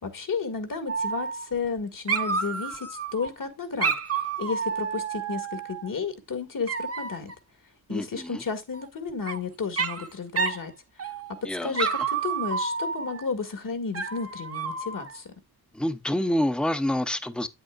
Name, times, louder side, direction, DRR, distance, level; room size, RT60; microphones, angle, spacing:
voice 1, 0.0-7.3 7.9-10.7 11.0-11.1 11.6-11.9 12.2-15.3, left 5 dB, 55° left, 1.9 m, -32 dB
Dog, 0.9-1.8 2.1-3.3 3.8-5.9 6.7-7.3 8.7-9.4 9.8-10.1 10.4-10.6 11.0-11.4 11.7-13.3 13.9-15.2, right 5 dB, 40° right, 0.8 m, -30 dB
voice 2, 7.9-8.4 11.4-11.9 15.7-17.5, left 1 dB, ahead, 0.7 m, -27 dB
8.8 x 7.8 x 2.4 m
cardioid pair, 65°, 38 cm